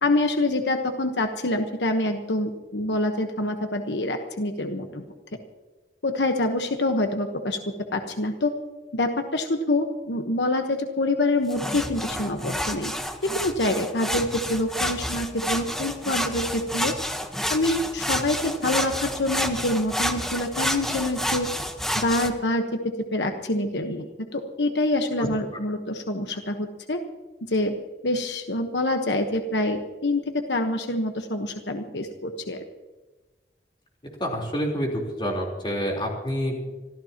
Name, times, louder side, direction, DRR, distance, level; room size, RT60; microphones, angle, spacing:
voice 1, 0.0-5.1 6.0-7.6 7.9-8.5 8.9-12.9 13.2-16.9 17.5-21.5 21.9-22.6 23.1-24.1 24.3-27.0 27.5-27.7 28.0-32.6, left 2 dB, 80° left, 5 dB, 1.2 m, -26 dB
sound 1, 11.5-22.3, equal, ahead, 1.0 m, -29 dB
voice 2, 34.2-34.9 35.2-36.7, equal, 30° left, -1 dB, 3.7 m, -27 dB
26.0 x 14.5 x 3.0 m, 1.2 s
head